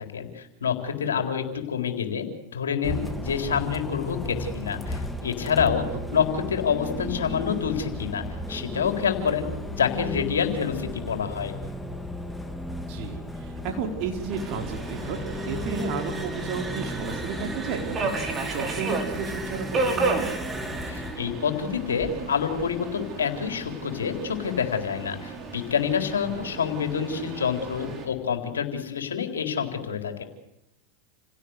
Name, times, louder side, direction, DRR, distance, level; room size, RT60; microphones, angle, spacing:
voice 1, 0.0-5.9 6.1-11.5 20.9-30.2, left 7 dB, 85° left, 5 dB, 4.1 m, -27 dB
Bus, 2.8-21.1, equal, 5° left, 2.7 m, -35 dB
voice 2, 12.9-15.2 15.5-20.3 26.2-26.4, right 5 dB, 55° right, 3 dB, 4.8 m, -33 dB
sound 1, 14.2-23.0, right 2 dB, 15° right, 3.3 m, -41 dB
Subway metro underground, 14.3-28.1, right 3 dB, 30° right, 5.9 m, -33 dB
29.5 x 17.0 x 8.2 m, 0.86 s
hypercardioid pair, 100°, 0 cm